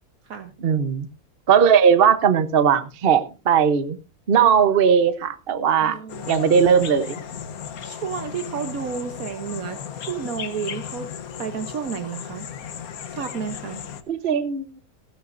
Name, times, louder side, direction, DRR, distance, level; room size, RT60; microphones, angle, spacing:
voice 1, 0.6-1.1 1.5-4.0 4.3-6.0 6.3-7.2 14.1-14.7, right 7 dB, 45° right, 11 dB, 1.0 m, -18 dB
voice 2, 5.8-6.3 7.8-11.1 11.4-12.5 13.1-13.8, right 7 dB, 70° right, 7 dB, 1.4 m, -31 dB
sound 1, 6.1-14.0, left 8 dB, 75° left, 1.4 m, -35 dB
16.0 x 12.5 x 2.6 m, 0.31 s
omnidirectional pair, 1.6 m